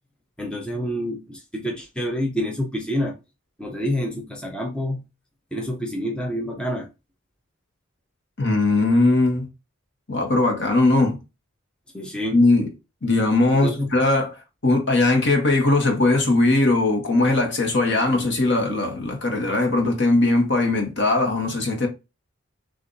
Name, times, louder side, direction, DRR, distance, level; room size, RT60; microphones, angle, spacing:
voice 1, 0.4-3.2 3.6-5.0 5.5-6.9 11.9-12.4 13.5-13.9, equal, 5° left, 0.6 m, -28 dB
voice 2, 8.4-9.5 10.1-11.2 12.3-12.7 13.0-14.3 14.6-21.9, left 2 dB, 55° left, 1.1 m, -19 dB
6.8 x 2.5 x 2.6 m
head